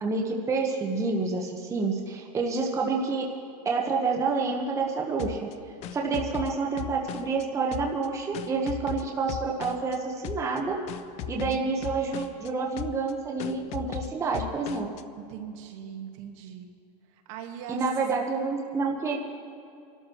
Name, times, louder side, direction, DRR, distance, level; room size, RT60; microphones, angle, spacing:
voice 1, 0.0-3.2 3.6-5.5 5.9-10.8 11.3-14.9 17.7-19.2, right 4 dB, 15° right, 0 dB, 1.1 m, -28 dB
sound 1, 5.2-7.4 7.7-10.0 10.2-10.6 10.9-12.5 12.8-13.1 13.4-15.0, left 10 dB, 30° left, 0.5 m, -37 dB
voice 2, 15.2-16.7 17.1-17.9, right 9 dB, 50° right, 4 dB, 1.6 m, -40 dB
26.0 x 12.5 x 3.0 m, 2.5 s
supercardioid pair, 140°, 21 cm